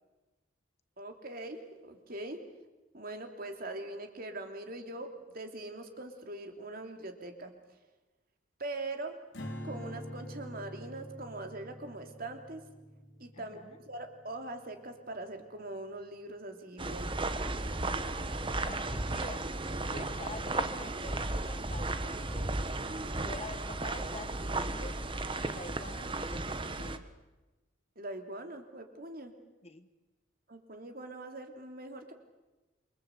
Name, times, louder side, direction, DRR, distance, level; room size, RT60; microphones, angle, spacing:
voice 1, 1.0-2.4 2.9-7.5 8.6-9.2 9.6-12.6 13.2-17.3 28.0-29.3 30.5-32.1, right 2 dB, 45° right, 5 dB, 3.1 m, -42 dB
Strum, 9.3-15.7, equal, 70° left, 3.3 m, -46 dB
voice 2, 13.3-13.8 18.6-19.4 19.9-25.0 25.4-27.0 29.6-29.9, left 2 dB, 30° left, 10 dB, 1.4 m, -47 dB
sound 1, 16.8-27.0, right 2 dB, 25° right, 1.2 m, -35 dB
28.0 x 24.0 x 8.2 m, 1.1 s
head